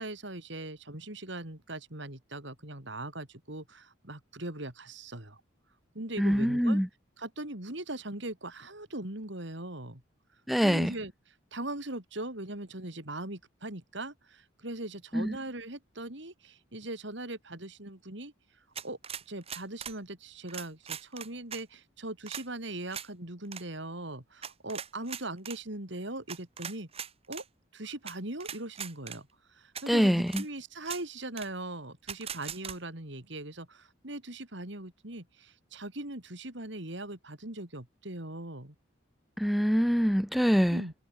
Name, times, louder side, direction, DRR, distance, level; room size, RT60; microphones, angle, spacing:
voice 1, 0.0-5.4 5.9-6.8 7.2-10.0 10.3-19.0 19.3-26.9 27.3-27.4 27.7-38.8 40.7-40.9, right 2 dB, 60° right, 3.5 m, -40 dB
voice 2, 6.2-6.9 10.5-10.9 15.1-15.3 29.9-30.4 39.4-40.8, equal, ahead, 0.6 m, -25 dB
sound 1, 18.7-20.0 20.5-21.6 22.3-22.4 22.9-23.1 23.4-23.6 24.4-25.6 26.3-27.4 28.1-28.2 28.4-29.2 29.7-29.8 30.3-30.5 30.8-31.0 31.4-31.5 32.1-32.8, right 8 dB, 30° right, 1.5 m, -40 dB
head